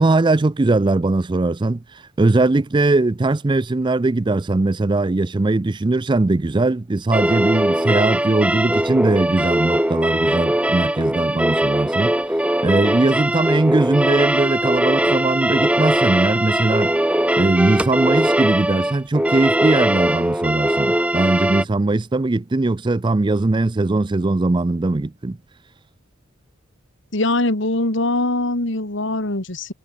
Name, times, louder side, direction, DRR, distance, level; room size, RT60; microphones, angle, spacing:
voice 1, 0.0-12.1 12.6-16.9 17.4-25.4, right 2 dB, 25° right, 0.4 m, -20 dB
sound 1, 7.1-21.6, right 1 dB, 5° right, 1.2 m, -20 dB
voice 2, 27.1-29.7, left 2 dB, 65° left, 2.6 m, -22 dB
head